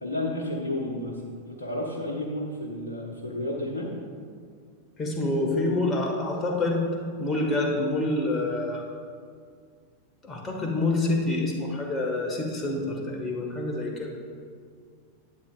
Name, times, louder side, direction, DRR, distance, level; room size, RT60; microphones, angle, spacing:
voice 1, 0.0-3.9, left 1 dB, 70° left, -2 dB, 0.9 m, -32 dB
voice 2, 5.0-6.9 7.2-8.8 10.2-14.1, left 2 dB, 20° left, 0 dB, 1.6 m, -27 dB
11.5 x 8.7 x 2.4 m, 2.1 s
figure-of-eight pair, 90°, 0 cm